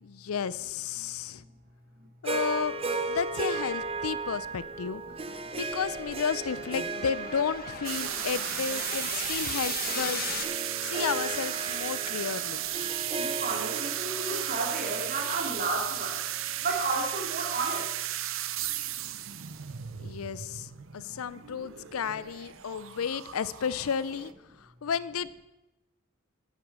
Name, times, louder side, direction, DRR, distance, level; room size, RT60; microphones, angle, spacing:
voice 1, 0.0-1.4 2.2-2.8 3.1-5.0 5.6-10.3 10.8-12.6 20.0-24.3 24.6-25.4, left 6 dB, 80° left, 18 dB, 0.5 m, -32 dB
Harp, 2.2-16.6, right 3 dB, 25° right, 0.6 m, -36 dB
sound 1, 3.5-10.4, left 6 dB, 45° left, 0.9 m, -40 dB
sound 2, 7.8-24.3, right 12 dB, 65° right, 0.6 m, -35 dB
voice 2, 13.2-16.2 16.6-17.9 22.0-22.1, right 3 dB, 45° right, 0 dB, 2.7 m, -32 dB
10.0 x 8.3 x 6.1 m, 0.99 s
head